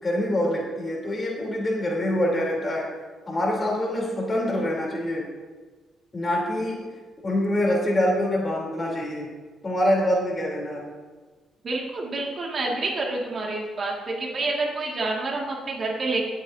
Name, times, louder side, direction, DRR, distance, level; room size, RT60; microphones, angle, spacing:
voice 1, 0.0-2.9 3.3-5.3 6.1-6.8 7.2-9.3 9.6-10.8, left 1 dB, 30° left, -2 dB, 3.6 m, -25 dB
voice 2, 11.6-16.3, right 2 dB, 45° right, -2 dB, 2.3 m, -28 dB
19.0 x 7.8 x 2.8 m, 1.4 s
cardioid pair, 90°, 0 cm